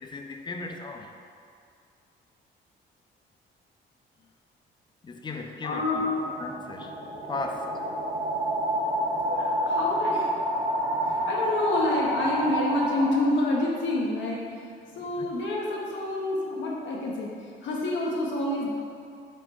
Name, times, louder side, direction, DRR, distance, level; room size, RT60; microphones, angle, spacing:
voice 1, 0.0-1.1 5.0-6.0 6.4-7.0 7.3-7.8 15.2-15.3, left 3 dB, 25° left, 4 dB, 0.4 m, -36 dB
voice 2, 5.6-6.3 9.2-10.3 11.0-14.4 15.0-17.3 17.6-18.7, left 2 dB, 70° left, -3 dB, 0.6 m, -28 dB
sound 1, 5.9-13.6, equal, 20° right, 0.6 m, -29 dB
4.3 x 2.1 x 4.3 m, 2.4 s
cardioid pair, 90°, 20 cm